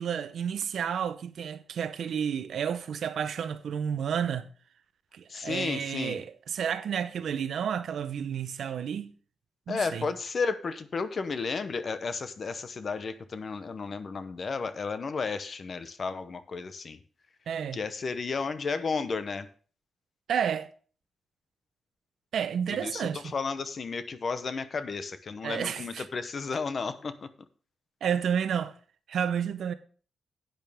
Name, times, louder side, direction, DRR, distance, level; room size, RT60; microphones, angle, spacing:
voice 1, 0.0-4.5 5.1-9.1 9.7-10.1 17.5-17.8 20.3-20.7 22.3-23.2 25.4-26.0 28.0-28.7 29.1-29.7, right 8 dB, 65° right, 0.7 m, -31 dB
voice 2, 5.3-6.2 9.7-17.0 17.7-19.5 22.7-27.3, left 4 dB, 40° left, 0.7 m, -33 dB
10.5 x 9.0 x 3.4 m
wide cardioid pair, 170°, 0 cm